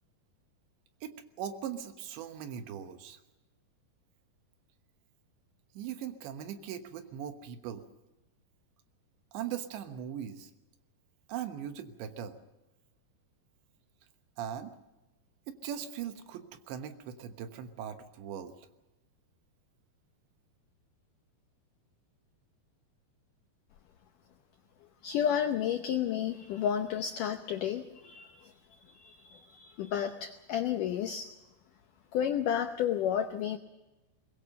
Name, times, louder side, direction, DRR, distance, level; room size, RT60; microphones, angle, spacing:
voice 1, 1.0-3.2 5.8-7.8 9.3-10.5 11.3-12.4 14.4-14.7 15.5-18.5, right 9 dB, 85° right, 8 dB, 3.6 m, -40 dB
voice 2, 25.0-28.5 28.8-31.3 32.1-33.6, left 9 dB, 80° left, 7 dB, 1.8 m, -31 dB
22.0 x 21.0 x 6.7 m, 1.0 s
omnidirectional pair, 5.0 m